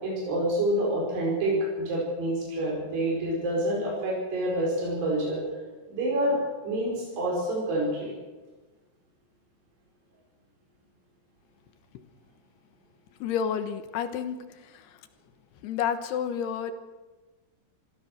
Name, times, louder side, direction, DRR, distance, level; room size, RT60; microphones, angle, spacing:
voice 1, 0.0-5.4 5.9-8.1, right 1 dB, 75° right, -3 dB, 7.0 m, -27 dB
voice 2, 13.2-15.0 15.6-16.7, left 8 dB, 80° left, 10 dB, 3.2 m, -30 dB
25.0 x 15.5 x 6.6 m, 1.2 s
omnidirectional pair, 4.7 m